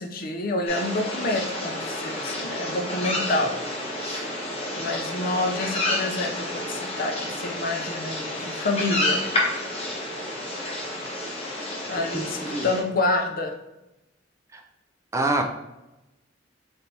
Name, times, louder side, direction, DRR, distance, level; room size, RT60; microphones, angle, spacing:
voice 1, 0.0-3.5 4.0-4.3 4.7-9.2 11.8-13.5, left 2 dB, 50° left, 4 dB, 0.5 m, -28 dB
sound 1, 0.7-12.8, left 1 dB, 35° left, 1.0 m, -30 dB
voice 2, 12.1-12.7 14.5-14.6 15.1-15.4, right 2 dB, 15° right, 3 dB, 0.3 m, -26 dB
4.1 x 3.3 x 2.7 m, 0.98 s
head